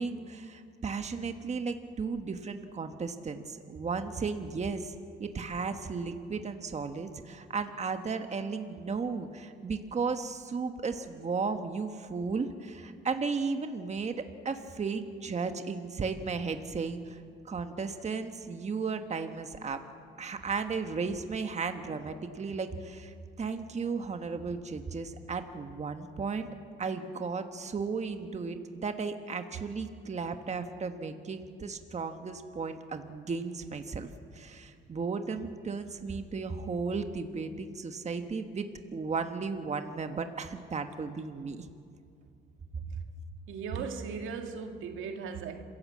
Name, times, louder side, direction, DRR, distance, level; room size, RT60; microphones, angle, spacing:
voice 1, 0.0-19.8 20.2-26.5 26.8-34.1 34.3-41.7, right 4 dB, 35° right, 1.3 m, -35 dB
voice 2, 43.5-45.6, right 6 dB, 85° right, 1.9 m, -37 dB
27.0 x 16.0 x 7.5 m
cardioid pair, 90°, 20 cm